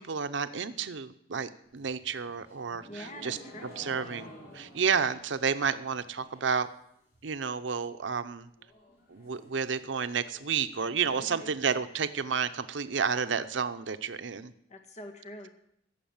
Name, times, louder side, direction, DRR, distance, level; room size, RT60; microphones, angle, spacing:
voice 1, 0.0-3.4 3.8-4.3 4.5-6.7 7.2-8.5 9.1-14.5, right 6 dB, 85° right, 10 dB, 0.7 m, -31 dB
sound 1, 1.6-6.7 7.0-7.5 7.8-7.9 8.1-8.2 8.5-12.5, equal, 55° left, 4.6 m, -52 dB
voice 2, 2.9-3.7 11.1-11.5 14.7-15.5, left 1 dB, 40° left, 3 dB, 1.5 m, -45 dB
15.0 x 7.3 x 8.7 m, 0.74 s
head